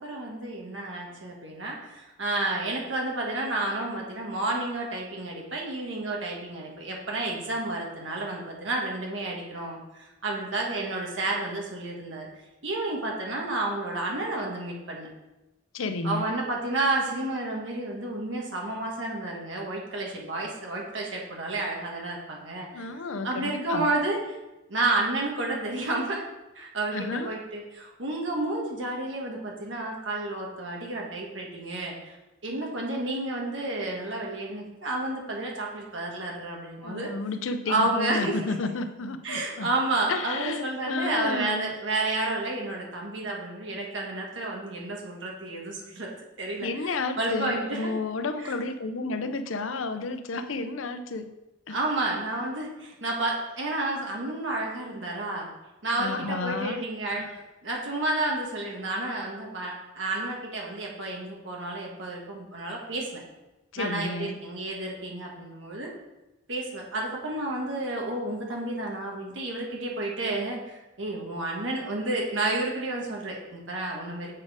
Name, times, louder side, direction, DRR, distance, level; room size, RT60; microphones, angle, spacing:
voice 1, 0.0-12.3 12.6-15.1 16.0-24.4 24.7-26.2 26.5-32.1 32.4-37.1 37.7-38.4 39.2-46.1 46.4-47.9 48.4-48.5 51.7-55.5 55.8-57.2 57.6-63.2 63.8-65.9 66.5-74.3, right 2 dB, 70° right, -1 dB, 1.4 m, -31 dB
voice 2, 15.7-16.3 22.7-23.9 26.9-27.3 36.8-39.7 40.1-41.7 46.6-51.3 51.7-51.8 56.0-56.8 57.1-57.4 63.7-64.4, left 3 dB, 85° left, 9 dB, 0.6 m, -32 dB
7.4 x 4.4 x 4.9 m, 1.0 s
head